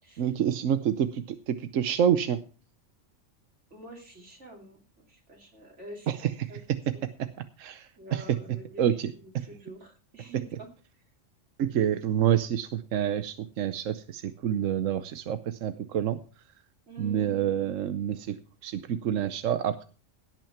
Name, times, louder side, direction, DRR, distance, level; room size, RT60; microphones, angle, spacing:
voice 1, 0.2-2.4 6.1-6.3 7.2-7.3 7.6-8.4 8.8-9.5 11.6-16.2 17.0-18.4 18.6-19.8, right 9 dB, 80° right, 11 dB, 1.2 m, -28 dB
voice 2, 3.7-6.2 6.5-7.0 8.0-8.9 9.5-10.7 16.9-17.8, right 2 dB, 65° right, 0 dB, 3.2 m, -46 dB
17.5 x 6.2 x 5.8 m, 0.35 s
omnidirectional pair, 1.3 m